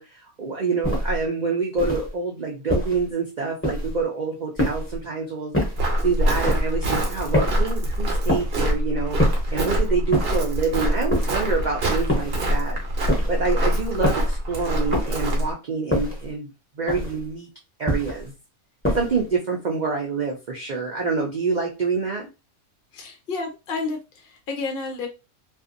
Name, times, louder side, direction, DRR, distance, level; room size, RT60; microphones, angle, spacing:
voice 1, 0.0-5.5 6.0-12.8 13.3-16.5 16.8-17.5 17.8-18.3 19.0-22.3, right 4 dB, 70° right, -1 dB, 0.4 m, -26 dB
sound 1, 0.8-1.2 1.8-2.1 2.7-3.1 3.6-4.0 4.6-5.0 5.5-5.9 6.4-6.8 7.3-7.7 8.3-8.7 9.2-9.6 10.1-10.5 11.1-11.5 12.1-12.5 13.1-13.5 14.0-14.4 14.9-15.3 15.9-16.3 16.9-17.3 17.9-18.3 18.8-19.3, equal, 10° left, 0.7 m, -26 dB
Walk footsteps, 5.8-15.5, equal, 50° right, 0.9 m, -24 dB
voice 2, 22.9-25.1, left 4 dB, 60° left, 3 dB, 0.6 m, -31 dB
2.6 x 2.5 x 2.5 m, 0.28 s
omnidirectional pair, 1.5 m